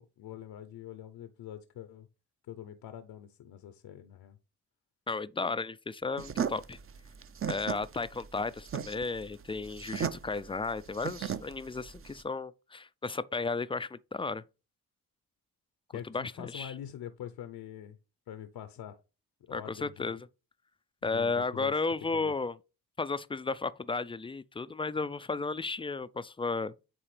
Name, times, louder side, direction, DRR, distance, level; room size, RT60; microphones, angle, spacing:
voice 1, 0.0-2.1 2.5-4.4 15.9-18.0 18.3-19.0 19.5-20.2 21.0-21.8 22.1-22.3, left 10 dB, 65° left, 0.7 m, -44 dB
voice 2, 5.1-6.8 7.5-14.4 16.1-16.7 19.5-20.3 21.0-22.6 23.0-26.7, left 3 dB, 15° left, 0.3 m, -34 dB
sound 1, 6.2-12.2, right 8 dB, 35° right, 0.6 m, -36 dB
8.8 x 3.8 x 3.3 m
supercardioid pair, 55°, 40 cm